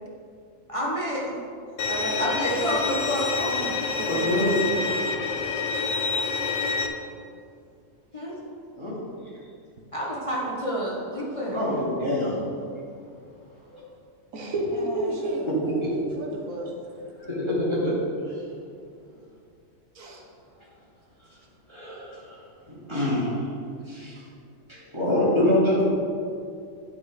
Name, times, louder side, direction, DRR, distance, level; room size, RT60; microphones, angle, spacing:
voice 1, 0.7-1.4 2.2-3.8 8.1-8.4 9.9-11.9 14.7-15.5, equal, 25° left, -5 dB, 1.1 m, -30 dB
Bowed string instrument, 1.8-6.9, left 4 dB, 65° left, 1.0 m, -27 dB
voice 2, 1.8-2.8 3.9-4.7 7.0-7.2 8.3-8.4 14.3-15.4 16.2-16.8 19.9-20.2, right 2 dB, 80° right, -1 dB, 1.5 m, -31 dB
voice 3, 4.1-4.6 8.8-9.0 11.5-12.4 13.7-13.8 15.8-16.0 17.2-17.9 21.7-22.4 22.7-23.3 23.9-24.1 24.7-25.8, left 1 dB, 20° right, -7 dB, 2.5 m, -25 dB
10.5 x 4.8 x 5.0 m, 2.4 s
omnidirectional pair, 1.4 m